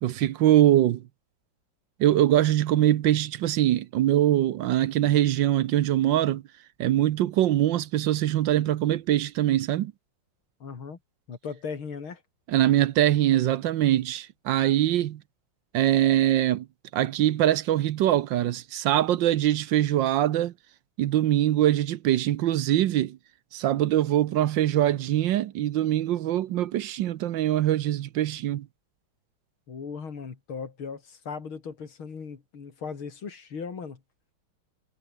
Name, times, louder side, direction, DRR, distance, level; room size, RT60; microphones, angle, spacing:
voice 1, 0.0-1.0 2.0-6.4 6.8-9.9 12.5-15.2 15.7-16.7 16.9-20.5 21.0-23.2 23.5-28.7, right 12 dB, 70° right, 1.4 m, -23 dB
voice 2, 10.6-11.0 11.3-12.2 29.7-34.0, left 5 dB, 85° left, 3.7 m, -37 dB
omnidirectional pair, 2.2 m